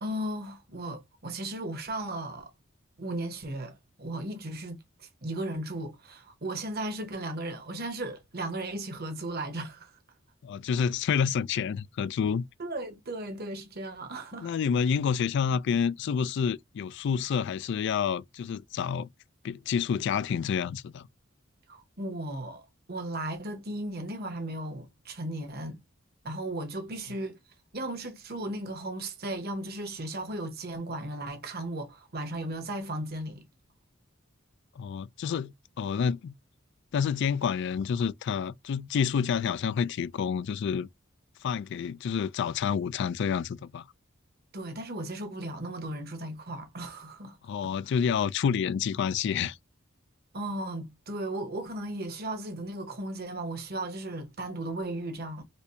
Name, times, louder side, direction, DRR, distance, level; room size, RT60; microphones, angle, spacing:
voice 1, 0.0-2.5 3.0-9.9 12.6-14.5 21.7-25.8 26.2-27.4 27.7-33.4 44.5-47.4 50.3-55.4, right 1 dB, 50° right, 1.1 m, -36 dB
voice 2, 10.4-12.4 14.4-19.1 19.4-21.1 34.8-36.3 36.9-40.9 41.4-43.8 47.4-49.6, left 7 dB, 60° left, 0.3 m, -28 dB
4.3 x 2.6 x 2.6 m
head